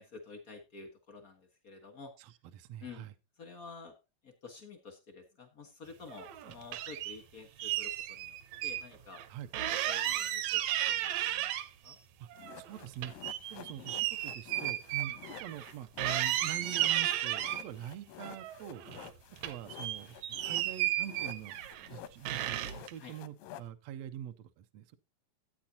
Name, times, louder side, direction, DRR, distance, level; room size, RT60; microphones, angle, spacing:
voice 1, 0.0-2.1 2.8-3.1 3.4-3.9 4.2-8.4 8.6-9.2 9.6-11.6 11.8-12.0 15.1-15.2 23.0-23.1, left 4 dB, 70° left, 0.8 m, -50 dB
voice 2, 2.2-3.1 9.3-9.5 12.2-12.3 12.6-13.1 13.5-15.1 15.4-18.8 19.4-21.6 21.9-25.0, right 11 dB, 85° right, 1.5 m, -44 dB
sound 1, 6.1-7.2 7.6-8.8 9.1-9.2 9.5-11.9 12.3-15.7 16.0-17.6 18.2-19.1 19.4-21.9 22.3-22.9, right 13 dB, 70° right, 1.9 m, -34 dB
sound 2, 12.4-20.8 21.0-23.7, left 12 dB, 85° left, 2.4 m, -50 dB
15.0 x 8.7 x 2.8 m
omnidirectional pair, 3.9 m